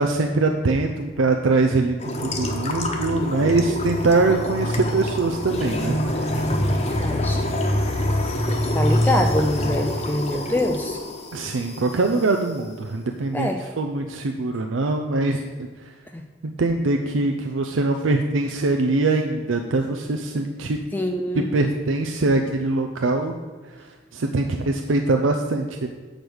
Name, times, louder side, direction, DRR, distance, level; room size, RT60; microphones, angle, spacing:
voice 1, 0.0-6.5 11.3-15.9 16.4-20.8 21.3-23.3 23.6-25.9, right 3 dB, 85° right, 4 dB, 0.5 m, -23 dB
sound 1, 2.0-12.4, left 1 dB, 35° left, 1.0 m, -25 dB
voice 2, 6.5-7.5 8.5-11.0 13.3-13.6 16.1-16.2 20.9-21.5, left 1 dB, 10° left, 4 dB, 0.4 m, -25 dB
7.8 x 5.1 x 6.2 m, 1.4 s
head